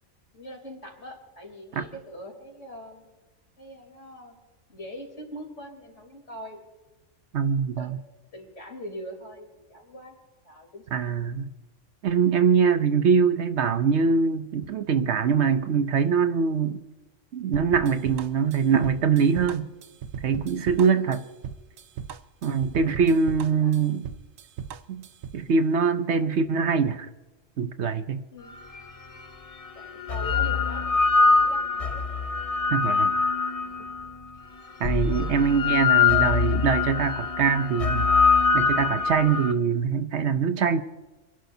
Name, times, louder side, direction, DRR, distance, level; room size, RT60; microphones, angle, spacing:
voice 1, 0.3-3.1 3.6-4.4 4.7-6.6 7.8-7.9 8.3-10.2 10.4-11.2 20.9-21.1 22.7-23.9 28.3-28.5 29.8-32.0 33.8-33.9 35.0-35.3, equal, 65° left, 3.9 m, -43 dB
voice 2, 7.3-7.9 10.9-11.5 12.0-16.8 17.3-19.7 20.2-21.3 22.4-24.1 24.9-25.1 25.3-27.1 27.6-28.3 32.7-33.1 34.8-38.1 38.5-40.8, right 6 dB, 65° right, 0.9 m, -23 dB
sound 1, 17.5-25.4, right 7 dB, 85° right, 1.1 m, -38 dB
sound 2, 28.8-28.9 29.8-34.1 34.8-39.5, left 5 dB, 35° left, 0.7 m, -23 dB
28.5 x 11.5 x 2.7 m
omnidirectional pair, 1.3 m